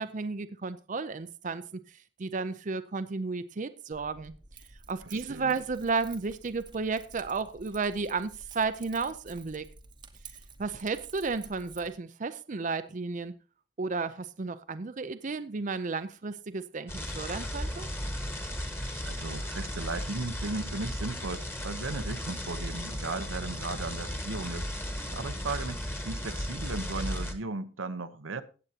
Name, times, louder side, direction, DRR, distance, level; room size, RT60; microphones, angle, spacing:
voice 1, 0.0-4.3 4.9-9.7 10.6-13.3 13.8-17.9, right 4 dB, 40° right, 0.5 m, -33 dB
Keys jangling, 3.9-11.9, right 4 dB, 25° right, 0.9 m, -51 dB
voice 2, 5.1-5.5 19.0-24.7 25.1-28.4, right 3 dB, 90° right, 0.9 m, -36 dB
sound 1, 16.9-27.3, equal, 10° left, 1.4 m, -35 dB
16.5 x 7.9 x 2.8 m
head